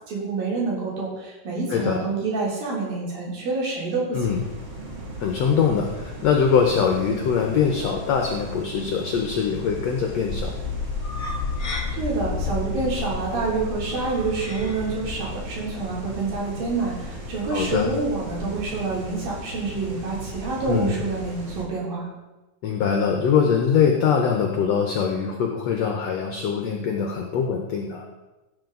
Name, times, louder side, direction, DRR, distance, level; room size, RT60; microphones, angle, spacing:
voice 1, 0.1-4.4 11.9-22.0, right 3 dB, 70° right, -5 dB, 5.1 m, -27 dB
sound 1, 4.2-21.7, right 1 dB, 35° right, 1.2 m, -37 dB
voice 2, 5.2-10.5 17.5-17.9 20.7-21.0 22.6-28.0, left 6 dB, 70° left, 2 dB, 1.7 m, -22 dB
sound 2, 10.3-18.7, left 4 dB, 40° left, 1.2 m, -33 dB
16.0 x 7.8 x 3.9 m, 1.1 s
omnidirectional pair, 4.2 m